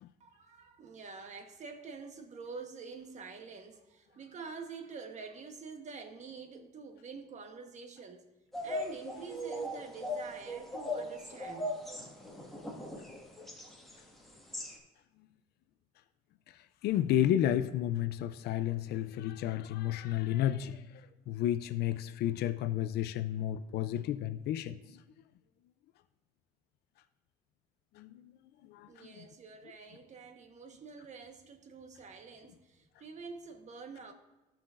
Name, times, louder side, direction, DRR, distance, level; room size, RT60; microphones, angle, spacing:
voice 1, 0.2-8.2 8.6-11.9 28.9-34.1, right 5 dB, 45° right, 1.2 m, -47 dB
sound 1, 8.5-14.0 14.3-14.7, left 1 dB, ahead, 1.6 m, -39 dB
voice 2, 16.8-20.8 21.3-24.8 28.0-28.1 28.7-29.2, left 11 dB, 70° left, 0.4 m, -31 dB
15.5 x 5.8 x 2.5 m
cardioid pair, 110°, 17 cm